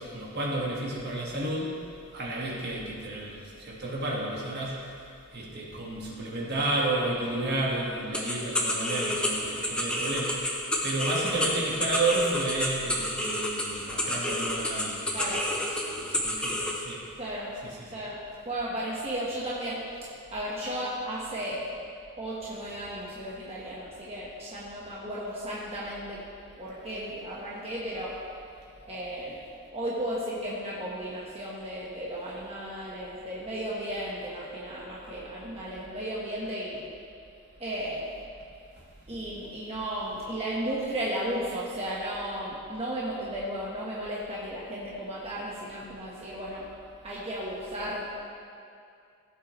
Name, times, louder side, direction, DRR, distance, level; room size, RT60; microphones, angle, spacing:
voice 1, 0.0-1.7 2.1-5.1 5.3-17.0 17.6-17.9 20.6-20.8, right 2 dB, 50° right, -4 dB, 1.8 m, -32 dB
sound 1, 8.1-16.8, left 1 dB, 5° left, 0.8 m, -30 dB
voice 2, 17.2-17.5 17.9-18.2 18.4-21.6 22.2-26.2 26.6-28.2 28.9-29.4 29.7-36.8 37.6-38.0 39.1-46.7 47.0-48.2, right 1 dB, 25° right, -7 dB, 1.3 m, -34 dB
16.0 x 8.0 x 3.2 m, 2.4 s
head